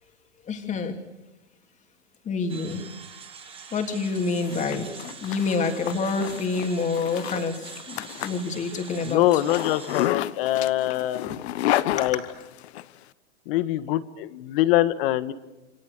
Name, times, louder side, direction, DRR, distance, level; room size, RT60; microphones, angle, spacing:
voice 1, 0.5-1.0 2.2-2.8 3.7-9.3 12.0-12.2, left 4 dB, 20° left, 4 dB, 3.0 m, -28 dB
sound 1, 2.5-10.1, right 5 dB, 15° right, 3.3 m, -44 dB
Zipper (clothing), 4.2-12.8, left 14 dB, 70° left, 1.1 m, -31 dB
voice 2, 9.0-11.4 11.9-12.2 13.5-15.3, left 14 dB, 55° left, 13 dB, 1.5 m, -24 dB
28.5 x 25.0 x 6.8 m, 1.1 s
hypercardioid pair, 135°, 34 cm